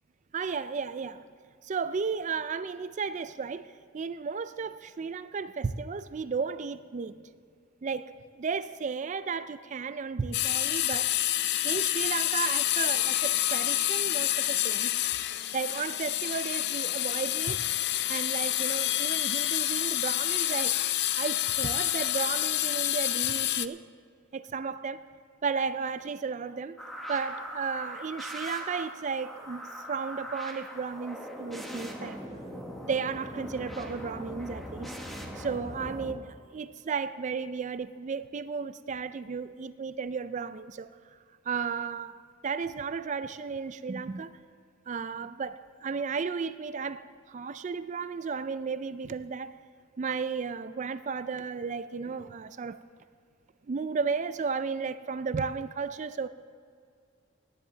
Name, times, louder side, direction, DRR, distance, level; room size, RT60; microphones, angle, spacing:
voice 1, 0.3-1.2 1.6-7.2 7.8-8.1 8.4-11.1 11.6-14.9 15.5-17.6 18.1-20.8 21.2-23.8 24.3-25.0 25.4-26.8 27.1-32.2 32.9-34.9 35.4-40.9 41.5-44.4 44.9-49.5 50.0-52.8 53.7-56.3, right 5 dB, 35° right, 0.4 m, -34 dB
sound 1, 10.3-23.7, left 14 dB, 55° left, 0.4 m, -28 dB
sound 2, 26.8-36.1, equal, ahead, 1.1 m, -40 dB
18.0 x 10.5 x 3.9 m
head